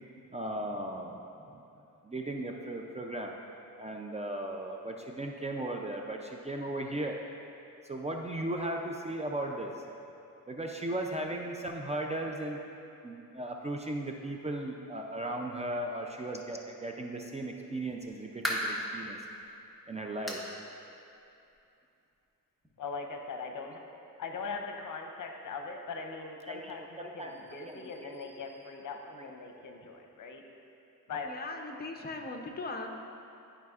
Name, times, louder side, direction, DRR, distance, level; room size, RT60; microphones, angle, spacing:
voice 1, 0.3-1.6 2.0-3.3 3.8-7.2 7.8-9.7 10.5-12.6 13.0-19.2 19.9-20.4 26.5-27.3 27.7-28.3, right 1 dB, 20° right, 1 dB, 0.4 m, -37 dB
sound 1, 18.0-18.9 19.4-19.5 20.3-20.5 20.9-21.0 21.5-21.6 22.6-22.7, equal, ahead, 1.1 m, -34 dB
voice 2, 22.8-23.8 24.2-30.4 31.1-31.3, left 4 dB, 60° left, 3 dB, 0.8 m, -40 dB
voice 3, 31.2-32.9, left 3 dB, 25° left, 3 dB, 0.7 m, -39 dB
12.0 x 5.0 x 2.4 m, 2.7 s
cardioid pair, 105°, 35 cm